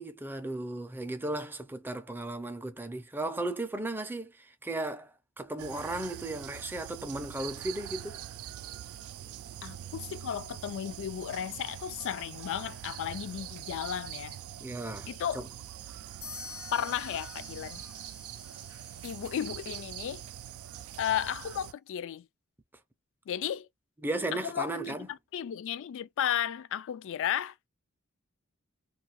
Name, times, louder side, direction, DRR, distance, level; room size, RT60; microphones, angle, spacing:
voice 1, 0.0-8.2 14.6-15.5 24.0-25.1, right 2 dB, 10° right, 0.4 m, -35 dB
sound 1, 5.6-21.7, right 11 dB, 75° right, 0.3 m, -44 dB
voice 2, 9.6-14.4 15.1-15.4 16.7-17.8 19.0-20.2 21.0-22.2 23.3-23.7 24.3-27.5, left 9 dB, 60° left, 0.3 m, -34 dB
sound 2, 16.2-20.0, left 6 dB, 90° left, 1.1 m, -48 dB
2.6 x 2.3 x 2.9 m
head